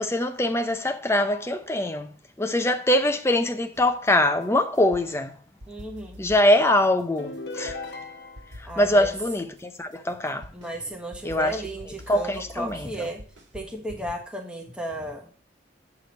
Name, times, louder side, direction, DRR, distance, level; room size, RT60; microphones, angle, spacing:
voice 1, 0.0-2.1 2.4-5.3 6.2-7.8 8.6-10.5 11.2-11.6 12.1-13.1, left 1 dB, 15° left, 0.6 m, -23 dB
sound 1, 3.7-5.2 5.6-8.0 8.4-14.1, left 1 dB, 75° right, 1.8 m, -46 dB
voice 2, 5.7-6.2 8.6-9.1 10.5-13.2 13.5-15.3, right 1 dB, 5° right, 1.2 m, -34 dB
sound 2, 7.2-8.7, left 2 dB, 60° left, 1.0 m, -37 dB
8.3 x 4.9 x 5.2 m
head